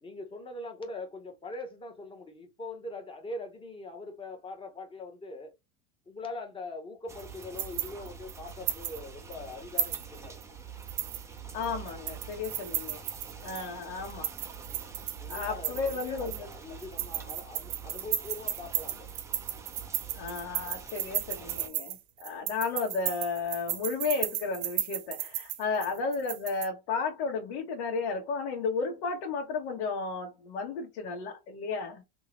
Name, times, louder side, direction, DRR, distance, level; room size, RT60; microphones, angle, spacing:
voice 1, 0.0-5.5 6.1-10.4 15.2-19.1, left 2 dB, 15° left, 0.9 m, -42 dB
sound 1, 7.1-21.7, right 6 dB, 10° right, 0.4 m, -46 dB
sound 2, 7.2-9.0 9.3-9.4 9.8-10.4 10.8-13.7 14.1-16.5 16.8-26.7, right 12 dB, 70° right, 0.9 m, -34 dB
voice 2, 11.5-13.0 13.4-14.3 15.3-16.5 20.1-32.0, left 4 dB, 85° left, 1.4 m, -33 dB
3.7 x 2.8 x 2.9 m
supercardioid pair, 150°, 34 cm